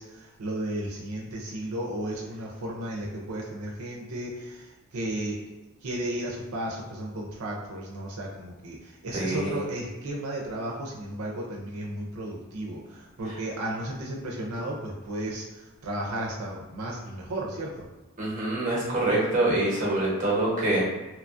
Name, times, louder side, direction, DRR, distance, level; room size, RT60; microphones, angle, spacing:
voice 1, 0.0-5.4 5.8-17.9, right 1 dB, 85° right, -2 dB, 0.5 m, -34 dB
voice 2, 9.1-9.6 18.2-20.8, right 2 dB, 35° right, -5 dB, 1.0 m, -25 dB
2.9 x 2.3 x 2.5 m, 1.1 s
head